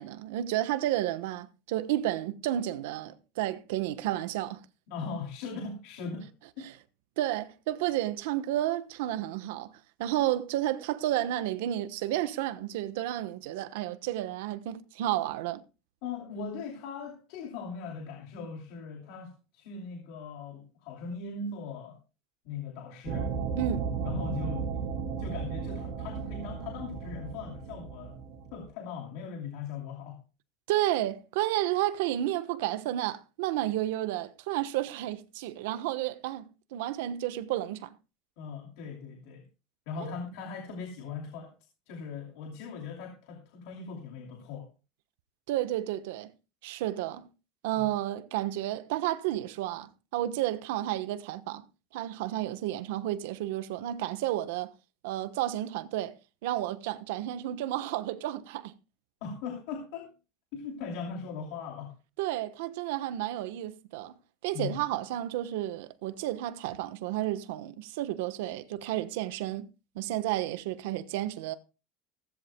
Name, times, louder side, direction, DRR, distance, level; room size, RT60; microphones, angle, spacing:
voice 1, 0.0-4.6 7.2-9.7 10.0-15.6 23.6-23.9 30.7-36.4 36.7-37.9 40.0-40.1 45.5-46.3 46.6-47.3 47.6-51.6 51.9-54.7 55.0-56.2 56.4-58.7 62.2-64.1 64.4-69.7 69.9-71.5, right 13 dB, 80° right, 1.0 m, -31 dB
voice 2, 4.9-6.6 16.0-22.0 22.4-23.3 24.0-24.9 25.2-28.1 28.5-30.2 38.4-39.5 39.9-41.5 41.9-44.7 47.8-47.9 59.2-60.1 60.5-61.9 64.5-64.8, left 5 dB, 60° left, 2.6 m, -39 dB
sound 1, 23.0-28.6, right 6 dB, 45° right, 4.6 m, -35 dB
16.5 x 15.0 x 2.2 m
cardioid pair, 180°, 0 cm